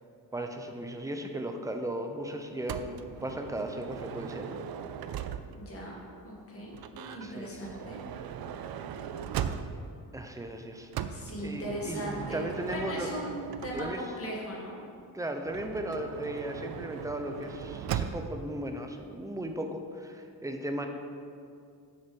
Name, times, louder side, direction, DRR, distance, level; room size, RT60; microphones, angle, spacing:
voice 1, 0.3-4.6 7.0-7.6 10.1-10.9 11.4-13.1 13.7-14.0 15.1-20.9, right 1 dB, 10° right, 4 dB, 0.6 m, -36 dB
Motor vehicle (road) / Sliding door, 2.7-5.8 6.7-10.0 10.9-14.2 15.5-18.4, right 8 dB, 70° right, 0.5 m, -38 dB
voice 2, 5.5-6.0 6.2-8.0 11.1-14.8, equal, 35° left, -4 dB, 2.1 m, -38 dB
7.2 x 6.7 x 5.3 m, 2.3 s
wide cardioid pair, 135°, 38 cm